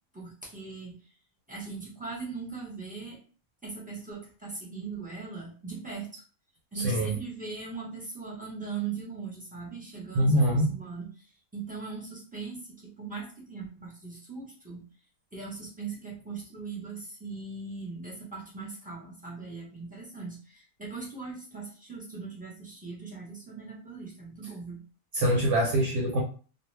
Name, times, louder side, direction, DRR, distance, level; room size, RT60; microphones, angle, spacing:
voice 1, 0.1-1.0 1.5-3.2 3.6-6.2 6.7-14.8 15.3-24.8, right 4 dB, 5° right, -5 dB, 0.8 m, -40 dB
voice 2, 6.8-7.1 10.1-10.7 25.1-26.2, right 1 dB, 60° right, -2 dB, 0.9 m, -24 dB
2.4 x 2.3 x 3.2 m, 0.39 s
omnidirectional pair, 1.5 m